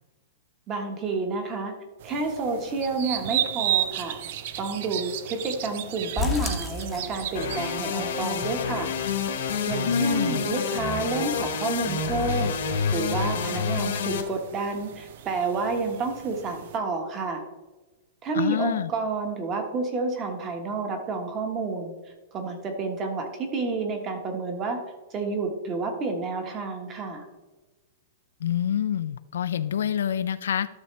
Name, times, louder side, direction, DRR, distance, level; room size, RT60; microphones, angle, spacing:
voice 1, 0.7-1.7 2.0-4.2 4.6-8.9 9.4-17.4 18.2-21.9 22.3-24.8 25.1-27.2, right 3 dB, 20° right, 4 dB, 1.3 m, -30 dB
sound 1, 2.0-16.8, right 11 dB, 50° right, 0.6 m, -35 dB
sound 2, 6.2-7.7 8.0-8.1 8.5-8.6 9.0-9.1, left 4 dB, 10° left, 1.0 m, -31 dB
sound 3, 7.3-14.2, left 6 dB, 70° left, 1.5 m, -28 dB
voice 2, 9.8-10.4 18.3-18.9 28.4-30.7, left 8 dB, 90° left, 13 dB, 0.5 m, -26 dB
12.0 x 6.4 x 3.2 m, 1.1 s
supercardioid pair, 170°, 0 cm